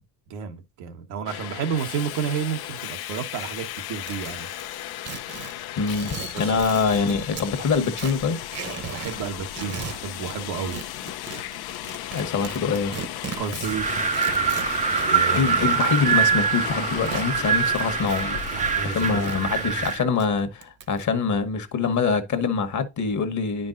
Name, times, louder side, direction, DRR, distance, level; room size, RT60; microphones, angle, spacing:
voice 1, 0.3-4.5 6.4-6.6 8.9-10.8 13.4-14.0 14.9-15.8 18.5-19.3, right 7 dB, 80° right, 1.4 m, -31 dB
Subway metro underground, 1.3-20.0, left 13 dB, 60° left, 0.7 m, -35 dB
sound 1, 4.0-7.5 7.8-9.2 9.5-10.3 10.7-17.3 17.7-19.4 19.7-21.0, right 6 dB, 35° right, 1.0 m, -38 dB
voice 2, 5.8-8.4 12.1-12.9 14.9-18.4 18.8-23.7, left 5 dB, 45° left, 1.2 m, -25 dB
Wind, 13.6-20.1, right 6 dB, 20° right, 0.6 m, -24 dB
9.5 x 5.3 x 2.5 m
cardioid pair, 100°, 42 cm